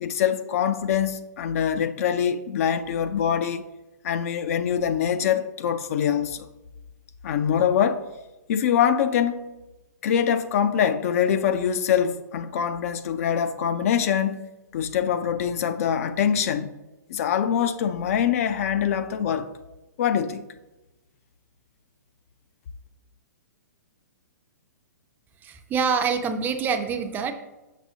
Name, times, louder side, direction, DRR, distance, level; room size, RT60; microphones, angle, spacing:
voice 1, 0.0-3.6 4.0-6.5 7.2-8.0 8.5-9.5 10.0-14.5 14.7-16.7 17.1-19.5 20.0-20.4, left 8 dB, 50° left, 0.4 m, -24 dB
voice 2, 25.4-27.3, right 6 dB, 20° right, 0.4 m, -25 dB
6.3 x 6.1 x 2.7 m
hypercardioid pair, 125°, 10 cm